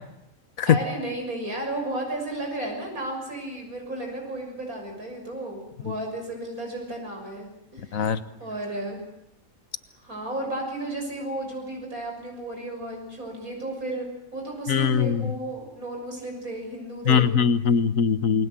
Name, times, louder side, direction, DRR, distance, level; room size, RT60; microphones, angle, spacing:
voice 1, 0.7-7.5 7.7-8.1 8.4-9.0 10.0-14.1 14.3-17.3, right 1 dB, 80° right, 1 dB, 7.1 m, -33 dB
voice 2, 14.7-15.3 17.1-18.5, left 7 dB, 70° left, 13 dB, 1.6 m, -21 dB
29.0 x 20.5 x 7.7 m, 0.82 s
omnidirectional pair, 1.5 m